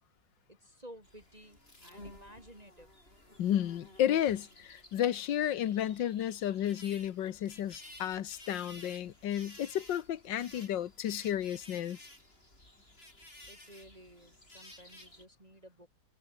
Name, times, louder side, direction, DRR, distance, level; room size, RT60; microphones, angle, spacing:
voice 1, 0.5-2.9 13.5-15.9, equal, 20° right, 5.4 m, -54 dB
sound 1, 1.0-15.3, left 1 dB, 30° left, 7.8 m, -54 dB
voice 2, 3.4-12.0, left 11 dB, 75° left, 1.8 m, -32 dB
omnidirectional pair, 2.0 m